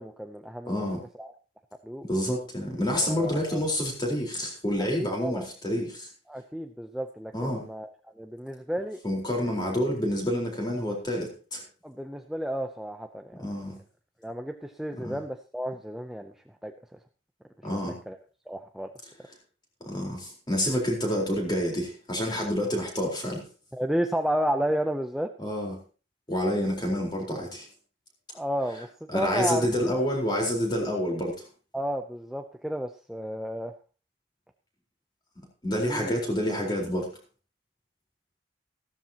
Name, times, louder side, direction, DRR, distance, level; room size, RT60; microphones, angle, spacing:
voice 1, 0.0-0.8 1.2-1.3 1.8-2.1 3.0-3.6 5.0-5.5 6.3-7.9 8.2-9.0 11.8-13.4 14.2-16.3 16.6-16.7 17.7-17.8 18.1-18.2 18.5-18.9 23.7-25.3 28.3-28.9 29.1-29.7 31.7-33.7 35.9-36.1, equal, ahead, 5 dB, 0.6 m, -32 dB
voice 2, 0.7-1.0 2.1-6.1 7.3-7.6 9.0-11.6 13.4-13.8 15.0-15.2 17.6-18.0 19.8-23.4 25.4-25.8 26.3-27.7 29.1-31.4 35.6-37.1, equal, 20° left, 0 dB, 4.2 m, -28 dB
15.5 x 13.0 x 2.9 m, 0.35 s
head